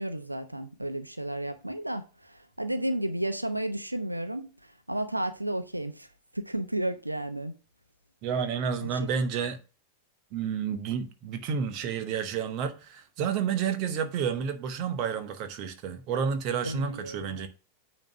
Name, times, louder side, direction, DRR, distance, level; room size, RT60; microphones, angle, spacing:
voice 1, 0.0-4.5 4.9-6.1 6.3-7.5 8.8-8.9 16.6-17.4, right 1 dB, 85° right, 0.8 m, -32 dB
voice 2, 8.2-9.6 10.3-17.5, right 7 dB, 40° right, 1.2 m, -30 dB
9.0 x 3.2 x 6.2 m
figure-of-eight pair, 90°, 0 cm